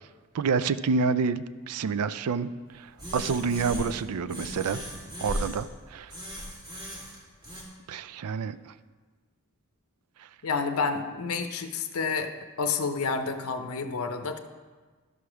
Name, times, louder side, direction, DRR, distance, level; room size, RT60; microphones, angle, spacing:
voice 1, 0.3-2.5 2.8-2.9 3.1-4.8 5.2-6.1 7.9-8.7, right 5 dB, 85° right, 15 dB, 0.4 m, -28 dB
sound 1, 3.0-4.0 4.3-5.6 6.1-7.6, equal, 20° right, 2.4 m, -37 dB
voice 2, 10.4-12.3 12.6-14.4, left 5 dB, 75° left, 7 dB, 0.7 m, -29 dB
12.5 x 4.9 x 6.0 m, 1.4 s
head